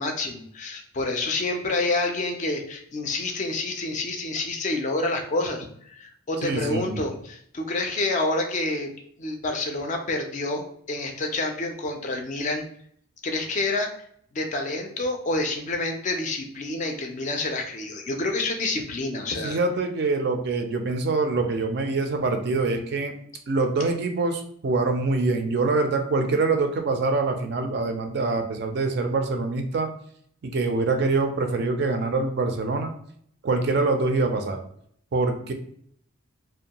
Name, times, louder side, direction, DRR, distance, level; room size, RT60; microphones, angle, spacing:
voice 1, 0.0-8.9 9.2-12.6 13.2-13.9 14.3-19.6, left 2 dB, 35° left, 4 dB, 0.3 m, -28 dB
voice 2, 6.4-7.0 19.4-23.1 23.5-29.9 30.4-32.9 33.4-34.6 35.1-35.5, right 3 dB, 50° right, 5 dB, 0.4 m, -25 dB
2.5 x 2.2 x 2.8 m, 0.64 s
head